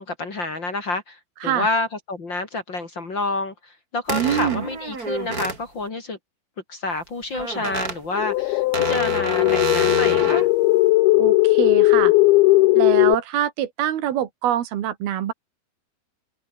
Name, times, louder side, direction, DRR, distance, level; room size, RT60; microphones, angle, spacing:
voice 1, 0.0-6.2 6.7-10.5, left 2 dB, 35° left, 2.9 m, -28 dB
sound 1, 4.1-5.6 7.3-8.0 8.7-10.5, right 4 dB, 25° right, 3.2 m, -28 dB
voice 2, 4.1-4.7 11.2-12.1 12.8-15.3, right 11 dB, 80° right, 3.7 m, -24 dB
sound 2, 8.1-13.2, left 19 dB, 90° left, 2.6 m, -17 dB
omnidirectional pair, 4.3 m